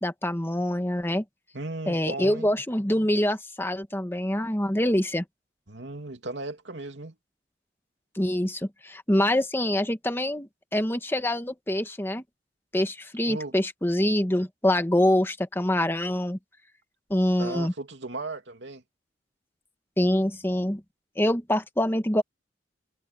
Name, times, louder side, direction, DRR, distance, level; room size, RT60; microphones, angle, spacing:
voice 1, 0.0-1.2 1.9-5.2 8.1-12.2 12.7-16.4 17.1-17.7 20.0-20.8 21.2-22.2, left 1 dB, 15° left, 1.5 m, -25 dB
voice 2, 1.5-2.5 5.7-7.1 13.3-13.5 17.4-18.8, right 2 dB, 85° right, 2.9 m, -36 dB
head